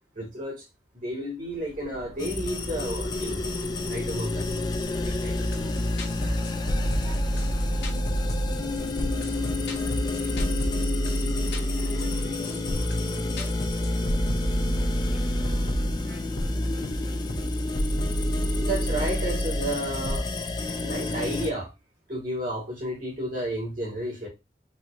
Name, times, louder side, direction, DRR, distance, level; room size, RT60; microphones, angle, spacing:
voice 1, 0.2-0.7 0.9-3.4 3.9-4.5 5.0-5.5 18.6-20.3 20.8-21.7 22.1-24.3, right 1 dB, 45° right, 1.9 m, -32 dB
sound 1, 1.4-11.3, equal, 80° right, 1.1 m, -42 dB
sound 2, 2.2-21.5, left 3 dB, 25° left, 0.3 m, -30 dB
sound 3, 5.4-20.2, equal, 60° left, 0.8 m, -29 dB
voice 2, 5.4-6.5 6.8-9.4 9.7-10.0 10.2-10.7 11.6-17.3, equal, 10° right, 1.1 m, -49 dB
4.1 x 2.8 x 2.4 m
head